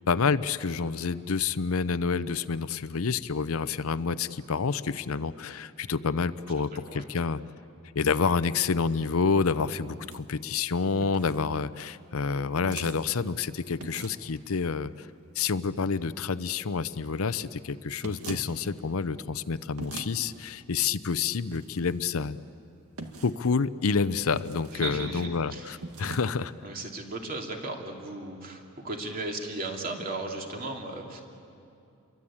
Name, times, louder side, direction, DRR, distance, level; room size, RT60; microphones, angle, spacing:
voice 1, 0.1-7.4 8.0-15.1 15.4-22.4 23.2-26.5, left 5 dB, 70° left, 14 dB, 0.7 m, -28 dB
sound 1, 9.9-10.2 11.0-11.4 12.6-13.0 13.8-14.3 18.0-18.5 19.8-20.1 21.5-22.0 23.0-23.4 24.3-24.9 25.8-26.3, right 2 dB, 85° right, 2.1 m, -40 dB
voice 2, 24.8-25.7 26.6-31.2, right 2 dB, 40° right, 1 dB, 3.0 m, -36 dB
29.0 x 23.5 x 8.7 m, 2.6 s
head